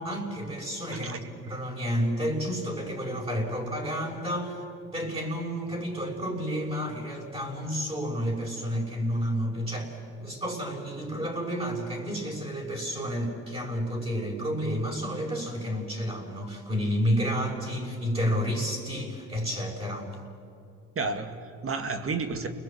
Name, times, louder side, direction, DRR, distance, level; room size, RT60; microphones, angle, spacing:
voice 1, 0.0-4.6 4.9-9.9 10.2-20.2, equal, 20° right, -1 dB, 6.1 m, -30 dB
voice 2, 21.0-22.5, right 4 dB, 45° right, 7 dB, 2.3 m, -31 dB
29.5 x 21.0 x 8.9 m, 2.7 s
cardioid pair, 90°, 30 cm